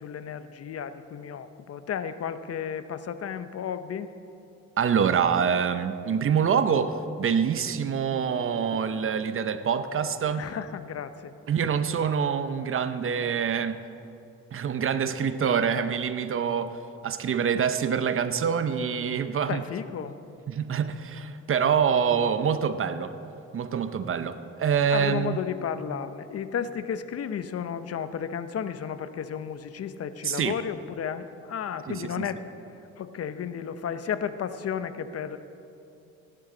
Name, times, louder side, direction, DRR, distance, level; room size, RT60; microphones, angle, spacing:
voice 1, 0.0-4.1 10.4-11.3 19.4-20.2 24.9-32.4 33.0-35.4, left 8 dB, 55° left, 11 dB, 0.7 m, -33 dB
voice 2, 4.8-10.4 11.5-13.8 14.5-16.8 17.0-19.6 20.5-23.1 23.5-25.4 30.2-30.6 31.9-32.2, right 7 dB, 45° right, 11 dB, 0.7 m, -26 dB
16.5 x 11.5 x 3.9 m, 2.8 s
cardioid pair, 90°, 30 cm